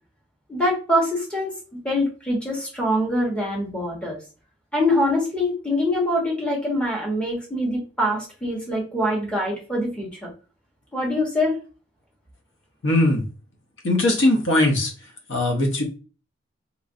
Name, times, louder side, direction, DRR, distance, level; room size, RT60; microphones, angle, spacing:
voice 1, 0.5-4.2 4.7-10.3 10.9-11.6, left 1 dB, 5° left, -4 dB, 1.0 m, -24 dB
voice 2, 12.8-13.3 13.8-14.9 15.3-15.8, left 1 dB, 70° left, 2 dB, 0.7 m, -20 dB
2.9 x 2.4 x 2.5 m, 0.34 s
head